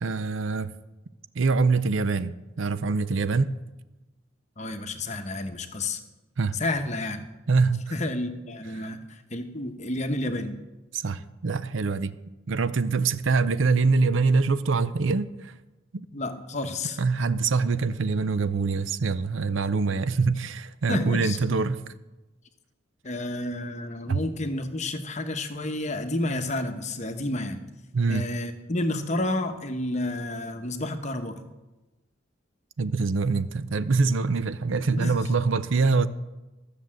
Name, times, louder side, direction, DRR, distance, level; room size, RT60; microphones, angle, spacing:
voice 1, 0.0-0.7 1.4-3.5 6.4-6.5 7.5-7.9 8.8-8.9 10.9-12.1 12.5-15.5 17.0-21.8 24.1-24.2 27.9-28.2 32.8-36.1, right 4 dB, 70° right, 14 dB, 0.5 m, -24 dB
voice 2, 4.6-6.0 6.5-7.2 7.9-10.6 16.1-17.0 19.9-20.0 20.9-21.4 23.0-27.6 28.1-31.4 34.9-35.2, left 2 dB, 35° left, 7 dB, 0.9 m, -30 dB
13.5 x 6.7 x 7.5 m, 1.1 s
head